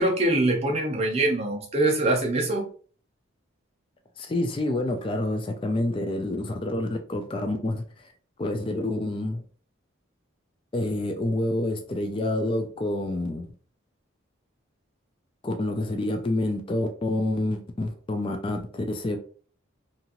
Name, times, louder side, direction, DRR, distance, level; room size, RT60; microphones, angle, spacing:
voice 1, 0.0-2.7, right 2 dB, 30° right, 0.6 m, -23 dB
voice 2, 4.2-8.1 8.4-9.4 10.7-13.5 15.4-19.2, left 1 dB, 25° left, 0.3 m, -28 dB
2.8 x 2.5 x 2.8 m
head